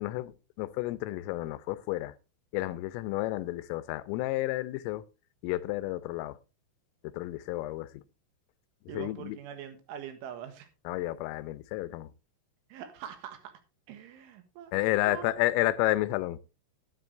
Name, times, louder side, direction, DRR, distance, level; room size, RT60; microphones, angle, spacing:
voice 1, 0.0-2.1 2.5-5.0 5.4-6.4 7.0-8.0 8.9-9.4 10.9-12.1 14.7-16.4, left 17 dB, 90° left, 3.4 m, -31 dB
voice 2, 8.9-10.7 12.7-13.5 13.9-14.7 15.1-15.3, right 9 dB, 75° right, 3.8 m, -43 dB
12.0 x 10.5 x 3.3 m
omnidirectional pair, 5.8 m